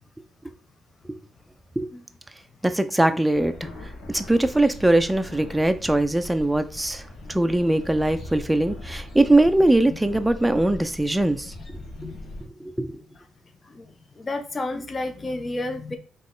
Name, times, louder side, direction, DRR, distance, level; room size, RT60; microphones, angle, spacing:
voice 1, 2.6-3.7 4.1-7.0 7.3-11.5 12.6-12.9, right 1 dB, 10° right, 0.5 m, -21 dB
sound 1, 3.3-12.5, left 2 dB, 85° left, 1.6 m, -40 dB
voice 2, 7.2-7.9 9.9-10.0 10.4-10.5 11.9-12.3 12.6-12.7 13.6-16.0, left 2 dB, 30° left, 0.7 m, -33 dB
4.0 x 3.2 x 3.8 m
cardioid pair, 90°, 0 cm